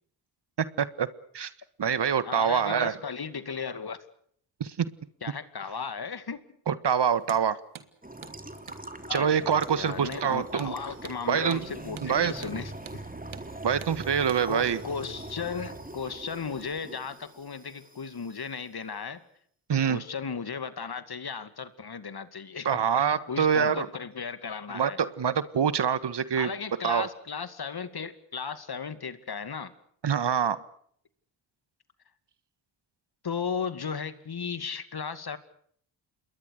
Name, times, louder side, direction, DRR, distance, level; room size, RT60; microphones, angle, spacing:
voice 1, 0.6-1.1 1.3-1.5 1.8-3.0 4.6-4.9 6.7-7.6 9.1-10.7 11.3-11.6 12.0-12.3 13.6-14.8 19.7-20.0 22.6-23.9 24.7-26.5 26.8-27.1 30.0-30.6, right 7 dB, 55° right, 15 dB, 1.6 m, -25 dB
voice 2, 2.2-4.0 5.2-6.4 9.1-9.3 9.8-12.7 14.5-19.2 19.7-22.7 23.3-25.0 26.4-29.7 33.2-35.4, left 6 dB, 50° left, 12 dB, 2.4 m, -35 dB
Hammer, 7.2-7.4 7.7-7.9 8.2-8.4 8.7-8.8 9.1-9.3 9.6-9.8 10.1-10.3 10.6-10.7 11.0-11.2 11.5-11.6 12.0-12.1 12.4-12.6 12.9-13.0 13.3-13.5 13.8-14.0 14.3-14.4, right 8 dB, 70° right, 2.1 m, -45 dB
sound 1, 8.0-18.4, right 2 dB, 15° right, 3.1 m, -42 dB
27.5 x 21.5 x 6.6 m, 0.64 s
supercardioid pair, 45°, 49 cm